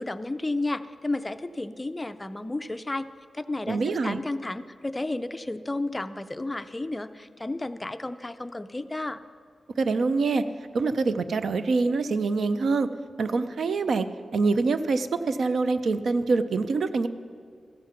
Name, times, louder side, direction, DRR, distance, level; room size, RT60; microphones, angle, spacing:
voice 1, 0.0-3.0 3.3-9.2, left 2 dB, 20° left, 11 dB, 0.4 m, -32 dB
voice 2, 3.7-4.2 9.8-10.4 10.7-12.9 13.2-14.1 14.3-17.1, right 4 dB, 75° right, 12 dB, 0.5 m, -25 dB
15.0 x 7.6 x 5.7 m, 2.2 s
wide cardioid pair, 90°, 0 cm